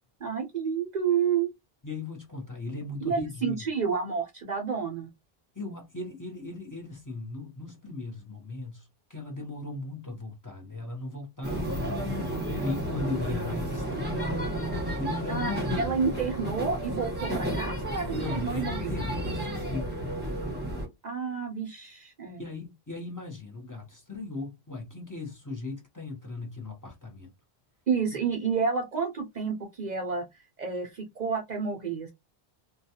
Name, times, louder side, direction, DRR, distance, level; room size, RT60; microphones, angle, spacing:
voice 1, 0.2-1.5 3.0-5.1 15.3-15.5 15.8-18.9 21.0-22.4 27.9-30.2 30.6-32.1, right 6 dB, 55° right, 0.6 m, -30 dB
voice 2, 1.8-3.6 5.5-14.6 15.0-15.6 18.1-19.9 22.4-27.3 28.1-28.2, left 3 dB, 20° left, 0.7 m, -38 dB
sound 1, 11.4-20.9, equal, 10° right, 1.0 m, -32 dB
2.3 x 2.2 x 2.7 m
omnidirectional pair, 1.1 m